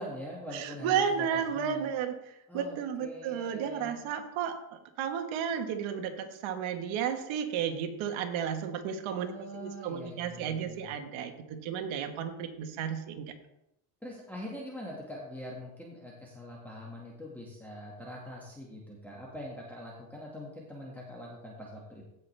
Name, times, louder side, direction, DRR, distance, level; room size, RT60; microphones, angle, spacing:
voice 1, 0.0-1.3 1.5-1.8 2.5-4.0 9.1-10.8 14.0-22.0, equal, 5° left, -5 dB, 1.9 m, -43 dB
voice 2, 0.5-13.3, right 8 dB, 70° right, 5 dB, 1.6 m, -33 dB
16.0 x 5.8 x 3.4 m, 0.84 s
cardioid pair, 130°, 49 cm